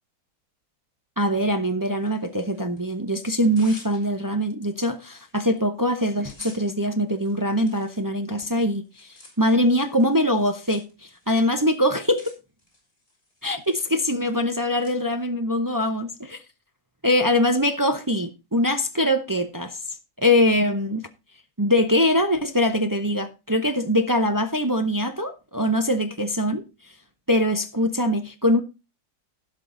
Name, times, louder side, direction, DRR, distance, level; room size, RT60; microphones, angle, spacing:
voice 1, 1.2-12.3 13.4-16.4 17.0-19.8 20.2-21.1 21.6-26.6 27.3-28.6, left 1 dB, 25° right, 0.4 m, -23 dB
Tearing, 2.0-2.8 3.3-4.4 4.9-5.0 5.3-5.6 5.9-14.9, left 1 dB, 45° left, 4.6 m, -51 dB
16.0 x 5.7 x 3.8 m
omnidirectional pair, 1.7 m